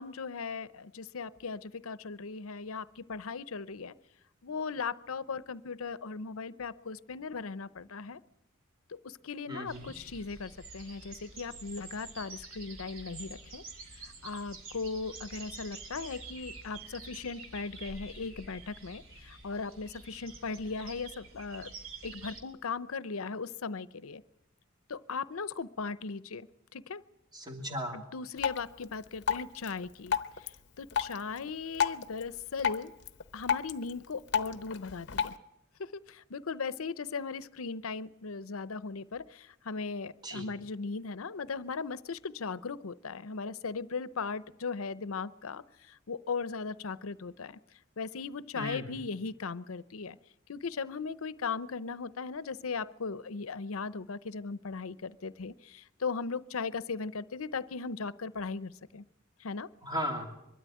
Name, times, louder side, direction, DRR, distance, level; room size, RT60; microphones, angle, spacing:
voice 1, 0.0-3.9 4.4-8.2 8.9-13.6 14.0-24.2 24.9-26.5 26.7-27.0 27.9-32.9 33.3-35.3 35.8-47.6 48.0-50.2 50.5-59.0 59.4-59.7, left 4 dB, 80° left, 17 dB, 0.7 m, -38 dB
voice 2, 9.5-9.9 27.3-28.0 40.2-40.4 48.6-48.9 59.8-60.3, equal, 20° right, 2 dB, 2.8 m, -36 dB
sound 1, 9.7-22.4, right 3 dB, 75° right, 3.0 m, -48 dB
Drip, 28.4-35.4, left 7 dB, 55° left, 0.9 m, -35 dB
23.0 x 13.0 x 9.1 m, 0.87 s
head